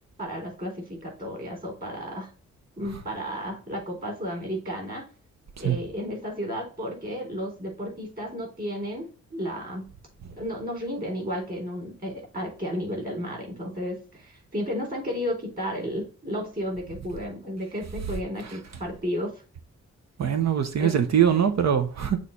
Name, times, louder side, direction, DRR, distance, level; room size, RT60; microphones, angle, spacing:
voice 1, 0.2-2.3 2.8-5.0 5.6-9.9 10.4-19.3 20.8-21.0, equal, 30° right, 3.9 m, -33 dB
voice 2, 20.2-22.2, right 8 dB, 65° right, 0.9 m, -22 dB
6.7 x 3.2 x 5.3 m
wide cardioid pair, 130°, 29 cm